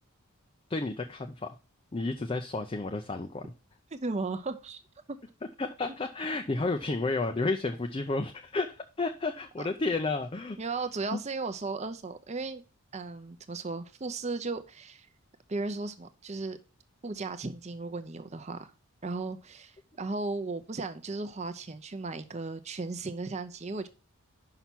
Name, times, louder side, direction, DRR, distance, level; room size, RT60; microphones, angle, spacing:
voice 1, 0.7-1.5 1.9-3.4 5.6-10.6 11.1-11.2, left 3 dB, 25° left, 0.4 m, -31 dB
voice 2, 3.9-4.8 5.1-5.2 9.6-9.7 10.6-12.6 12.9-15.1 15.5-16.6 17.0-18.7 19.0-23.9, right 3 dB, 30° right, 0.6 m, -35 dB
5.8 x 5.6 x 6.0 m
head